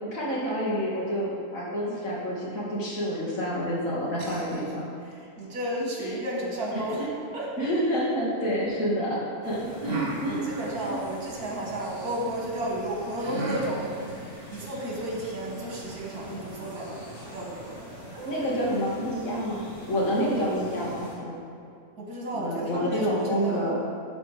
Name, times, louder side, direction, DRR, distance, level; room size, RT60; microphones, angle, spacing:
voice 1, 0.0-4.8 6.0-6.2 6.7-6.8 7.6-10.4 10.9-11.0 18.2-21.4 22.3-23.8, equal, 65° left, -6 dB, 2.5 m, -28 dB
voice 2, 4.2-4.6 5.1-7.1 7.3-7.7 10.3-14.0 14.5-17.8 22.0-23.7, right 1 dB, 85° right, -3 dB, 2.2 m, -33 dB
sound 1, 6.6-8.8 9.8-11.9 13.2-18.8, right 2 dB, 55° right, 1.6 m, -39 dB
sound 2, 9.4-21.2, equal, 85° left, 2.8 m, -45 dB
11.5 x 4.4 x 4.9 m, 2.6 s
omnidirectional pair, 1.6 m